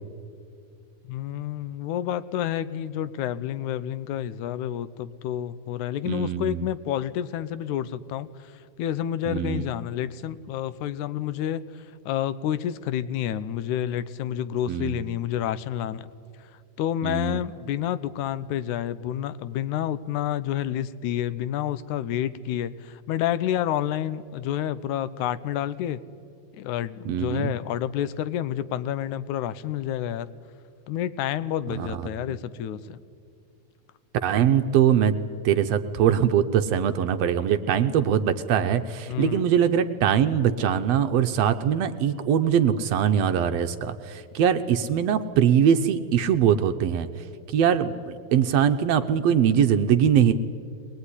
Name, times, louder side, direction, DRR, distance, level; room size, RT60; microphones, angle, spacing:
voice 1, 1.1-8.3 8.8-11.6 12.1-16.1 16.8-26.0 26.5-30.3 30.9-33.0 39.1-39.5, left 11 dB, 85° left, 15 dB, 2.2 m, -29 dB
voice 2, 6.1-6.7 9.3-9.7 14.7-15.0 17.0-17.4 27.1-27.5 31.8-31.9 32.3-32.4 34.2-35.1 35.5-47.1 47.5-50.3, right 8 dB, 70° right, 8 dB, 1.7 m, -22 dB
22.0 x 20.5 x 9.8 m, 2.3 s
omnidirectional pair, 3.4 m